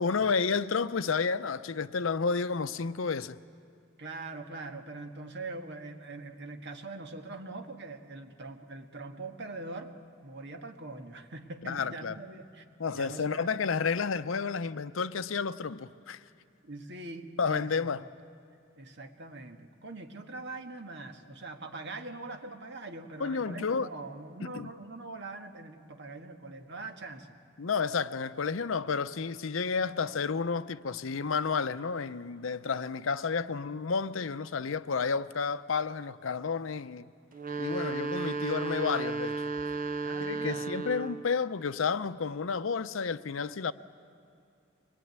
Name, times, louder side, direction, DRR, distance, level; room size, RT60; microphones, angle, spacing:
voice 1, 0.0-3.4 11.6-12.2 12.8-16.2 17.4-18.0 23.2-23.9 24.4-24.7 27.6-37.1 37.6-39.4 40.2-43.7, left 5 dB, 75° left, 0.6 m, -31 dB
voice 2, 4.0-10.0 10.2-12.6 12.9-13.6 16.6-17.9 18.8-27.3 40.0-40.6, right 2 dB, 60° right, 1.6 m, -42 dB
sound 1, 37.3-41.3, right 3 dB, 45° right, 0.8 m, -34 dB
24.5 x 21.0 x 9.5 m
head